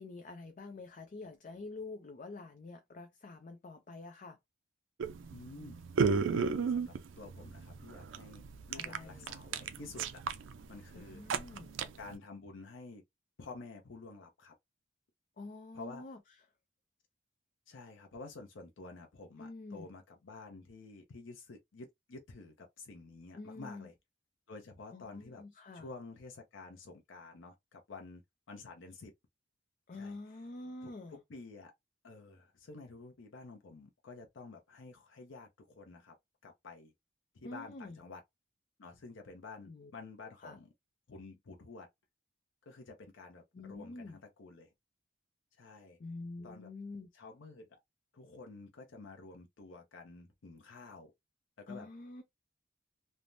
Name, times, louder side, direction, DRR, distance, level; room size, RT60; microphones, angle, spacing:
voice 1, 0.0-4.4 8.7-9.4 10.9-11.8 15.4-16.2 19.4-19.9 23.3-23.9 24.9-25.9 29.9-31.2 37.4-38.0 39.7-39.9 40.4-40.6 43.5-44.2 46.0-47.1 51.7-52.2, left 3 dB, 45° left, 0.4 m, -47 dB
sound 1, 5.0-12.2, right 5 dB, 80° right, 0.4 m, -35 dB
voice 2, 5.3-10.2 10.7-11.2 12.0-13.0 13.4-14.5 15.7-16.0 17.7-23.9 24.5-25.4 25.7-28.2 28.5-29.1 29.9-30.4 30.8-31.7 32.0-36.1 36.4-36.9 37.3-38.2 38.8-40.7 41.1-41.9 42.7-44.7 45.6-46.0 46.4-46.7 47.1-47.7 48.1-51.1 51.6-51.9, left 3 dB, 90° left, 0.6 m, -50 dB
3.3 x 2.1 x 2.5 m
head